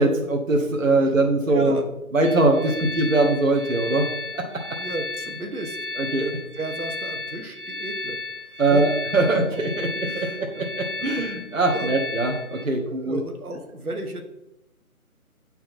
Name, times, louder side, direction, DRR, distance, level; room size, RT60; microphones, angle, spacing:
voice 1, 0.0-1.8 2.1-4.1 4.3-4.8 6.0-6.2 8.6-13.2, right 2 dB, 60° right, 2 dB, 1.3 m, -22 dB
voice 2, 1.5-1.8 2.6-2.8 4.7-8.8 9.4-9.5 10.0-10.7 11.0-11.3 11.7-11.9 12.7-14.2, right 2 dB, 80° right, 4 dB, 1.4 m, -35 dB
sound 1, 2.2-12.6, left 2 dB, 35° right, 0.9 m, -34 dB
8.8 x 4.4 x 4.2 m, 0.88 s
figure-of-eight pair, 175°, 44 cm